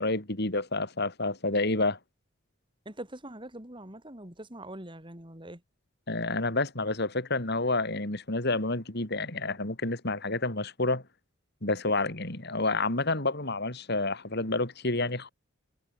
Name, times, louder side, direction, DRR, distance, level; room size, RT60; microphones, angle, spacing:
voice 1, 0.0-2.0 6.1-11.0 11.6-15.3, left 2 dB, 55° left, 3.6 m, -29 dB
voice 2, 2.8-5.6, right 1 dB, 25° right, 4.6 m, -43 dB
head